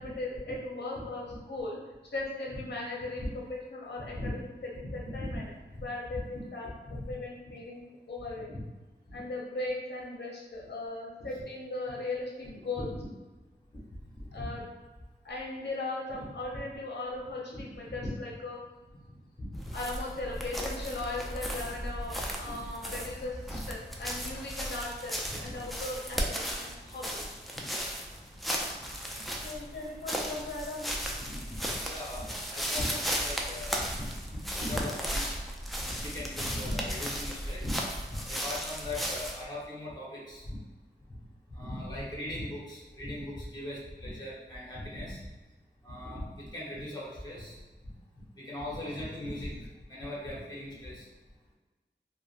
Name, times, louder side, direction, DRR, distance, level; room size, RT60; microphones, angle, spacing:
voice 1, 0.0-1.8 2.1-4.5 4.8-5.4 5.8-6.7 7.1-7.8 8.1-8.6 9.1-12.9 14.3-14.6 15.2-18.6 19.1-19.2 19.7-27.2 29.3-30.9, left 2 dB, 65° left, -3 dB, 0.6 m, -38 dB
voice 2, 4.0-4.3 4.8-5.8 6.1-6.2 6.6-7.1 8.4-8.5 13.7-13.8 14.1-14.5 17.5-18.1 19.4-19.6 22.4-22.5 23.5-23.6 25.3-25.6 29.2-29.3 31.2-35.4 35.8-37.8 38.1-40.6 41.5-45.2 45.8-47.9 48.4-51.1, left 1 dB, 20° left, -6 dB, 1.0 m, -39 dB
sound 1, 19.6-39.4, equal, ahead, 0.4 m, -36 dB
3.5 x 2.1 x 2.5 m, 1.2 s
wide cardioid pair, 70°, 19 cm